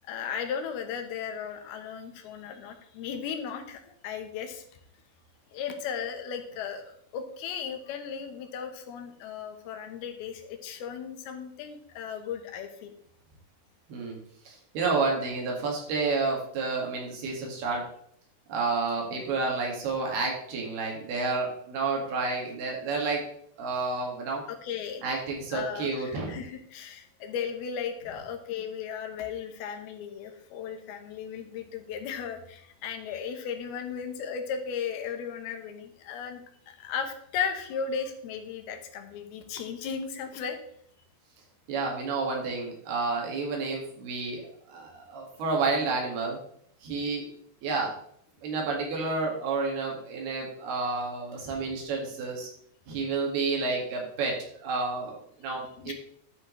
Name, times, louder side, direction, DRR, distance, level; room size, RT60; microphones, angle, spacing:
voice 1, 0.1-4.6 5.5-12.9 24.5-25.0 25.5-40.6 55.8-55.9, left 7 dB, 85° left, 6 dB, 3.0 m, -36 dB
voice 2, 14.5-17.9 18.5-23.2 23.6-24.4 25.0-26.4 41.7-46.4 46.8-47.3 47.6-48.0 48.4-52.5 52.9-55.9, right 4 dB, 90° right, -1 dB, 4.0 m, -30 dB
12.0 x 6.1 x 3.2 m, 0.66 s
omnidirectional pair, 4.4 m